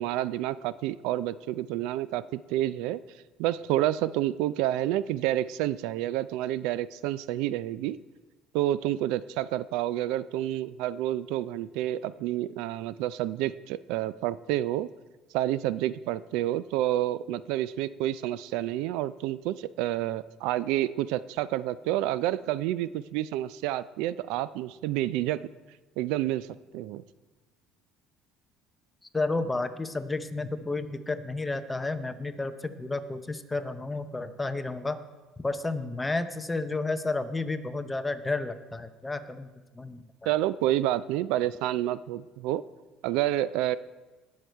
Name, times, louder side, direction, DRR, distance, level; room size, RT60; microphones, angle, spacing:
voice 1, 0.0-3.0 3.4-8.0 8.5-14.9 15.3-25.4 26.0-26.5 26.7-27.0 40.3-42.6 43.0-43.8, right 13 dB, 80° right, 17 dB, 0.3 m, -29 dB
voice 2, 29.1-35.0 35.4-40.3, left 3 dB, 10° left, 10 dB, 0.6 m, -31 dB
18.5 x 6.5 x 4.5 m, 1.2 s
cardioid pair, 140°, 0 cm